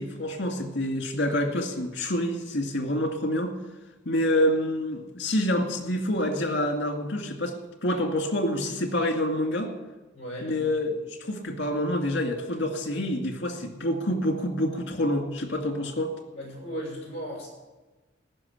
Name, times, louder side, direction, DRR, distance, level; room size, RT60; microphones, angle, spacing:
voice 1, 0.0-3.5 4.1-7.5 7.8-9.7 10.4-16.1, left 1 dB, 65° left, 4 dB, 2.1 m, -27 dB
voice 2, 10.1-10.7 16.3-17.5, equal, 35° left, -1 dB, 6.1 m, -36 dB
14.5 x 6.2 x 10.0 m, 1.2 s
head